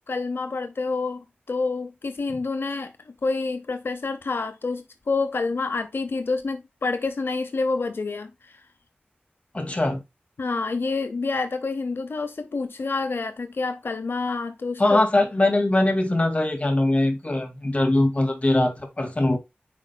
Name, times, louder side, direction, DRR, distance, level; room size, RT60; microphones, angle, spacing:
voice 1, 0.1-8.6 10.4-15.0, left 3 dB, 85° left, 0.7 m, -28 dB
voice 2, 9.5-10.0 14.8-19.4, left 2 dB, 35° left, 2.1 m, -21 dB
8.8 x 4.9 x 2.3 m
wide cardioid pair, 80°, 4 cm